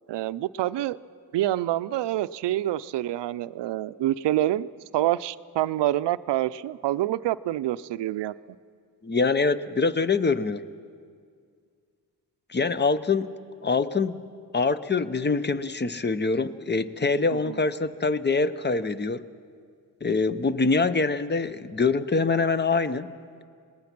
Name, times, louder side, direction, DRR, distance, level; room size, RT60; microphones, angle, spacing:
voice 1, 0.1-1.0 1.3-4.7 4.9-8.3 17.3-17.6, right 14 dB, 90° right, 16 dB, 0.5 m, -27 dB
voice 2, 9.0-10.6 12.5-13.4 13.6-14.2 14.5-19.3 20.0-23.1, left 4 dB, 25° left, 14 dB, 0.7 m, -24 dB
26.5 x 19.5 x 6.0 m, 2.2 s
cardioid pair, 80°, 41 cm